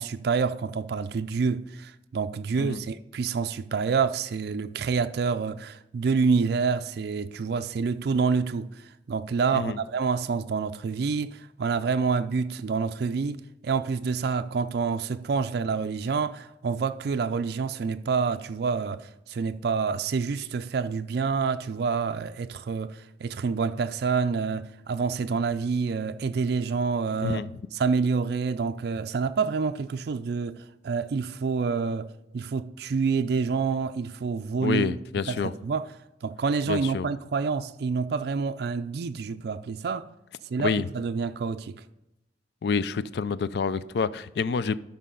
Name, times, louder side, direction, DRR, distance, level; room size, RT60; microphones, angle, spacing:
voice 1, 0.0-27.4 27.7-35.0 35.3-35.9 36.2-40.1 40.5-41.8, right 5 dB, 60° right, 0.4 m, -27 dB
voice 2, 34.6-35.5 36.7-37.1 40.6-40.9 42.6-44.8, left 5 dB, 65° left, 0.4 m, -28 dB
12.5 x 5.5 x 3.9 m
head